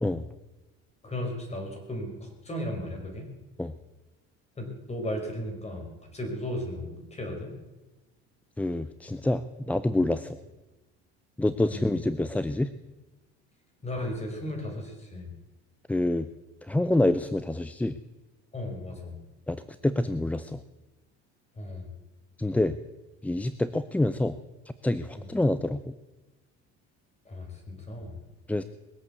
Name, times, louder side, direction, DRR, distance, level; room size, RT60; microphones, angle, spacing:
voice 1, 1.0-3.3 4.6-7.5 11.6-11.9 13.8-15.3 18.5-19.2 21.6-21.9 25.1-25.3 27.3-28.2, left 1 dB, 20° left, 2 dB, 5.1 m, -35 dB
voice 2, 8.6-10.4 11.4-12.7 15.9-16.3 16.6-18.0 19.5-20.6 22.4-22.8 23.2-24.4 24.8-25.9 28.5-28.6, left 1 dB, 5° left, 12 dB, 0.5 m, -27 dB
21.0 x 8.2 x 8.2 m, 1.1 s
cardioid pair, 120°, 30 cm